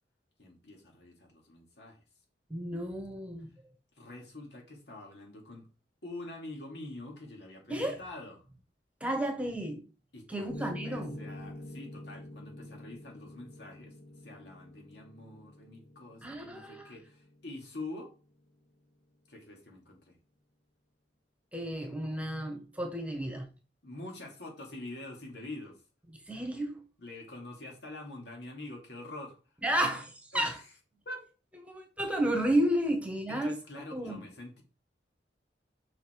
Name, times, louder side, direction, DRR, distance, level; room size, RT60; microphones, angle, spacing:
voice 1, 0.4-2.0 4.0-5.7 6.0-8.4 10.1-14.0 14.2-18.1 19.3-20.2 23.8-25.8 27.0-29.4 30.3-30.6 31.0-31.3 33.3-34.6, left 2 dB, 70° left, 2.8 m, -45 dB
voice 2, 2.5-3.5 7.7-8.0 9.0-9.8 10.3-11.2 16.2-16.9 21.5-23.5 26.3-26.8 29.6-30.6 31.6-33.5 33.9-34.2, right 1 dB, 10° right, 1.4 m, -32 dB
Piano, 10.5-18.5, left 1 dB, 45° left, 1.0 m, -46 dB
6.1 x 5.7 x 4.7 m
head